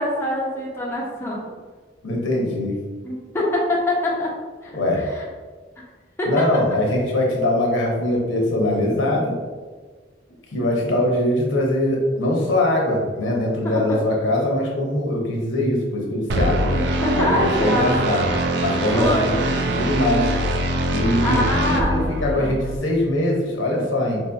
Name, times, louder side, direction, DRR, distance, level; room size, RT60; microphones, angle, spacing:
voice 1, 0.0-1.4 3.0-4.3 4.6-5.2 6.2-6.5 13.6-14.0 16.7-18.0 18.9-19.3 21.2-22.5, left 1 dB, 15° left, -4 dB, 0.5 m, -24 dB
voice 2, 2.0-2.8 4.7-5.0 6.3-9.3 10.5-16.7 17.2-18.3 18.6-20.3 20.9-24.2, left 1 dB, 80° left, -1 dB, 0.8 m, -22 dB
sound 1, 16.3-22.8, right 1 dB, 60° right, 0.3 m, -23 dB
4.2 x 2.6 x 2.2 m, 1.4 s
head